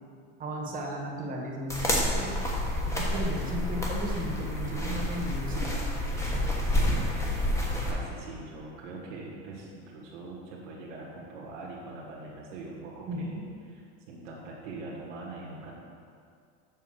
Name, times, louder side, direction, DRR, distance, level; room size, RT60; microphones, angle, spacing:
voice 1, 0.4-2.4 2.9-5.8 13.1-13.4, equal, 25° right, -1 dB, 1.4 m, -35 dB
sound 1, 1.7-7.9, left 1 dB, 10° left, 1.1 m, -29 dB
voice 2, 7.9-13.4 14.1-15.7, right 2 dB, 80° right, -4 dB, 1.8 m, -42 dB
7.5 x 5.7 x 5.7 m, 2.3 s
supercardioid pair, 145°, 36 cm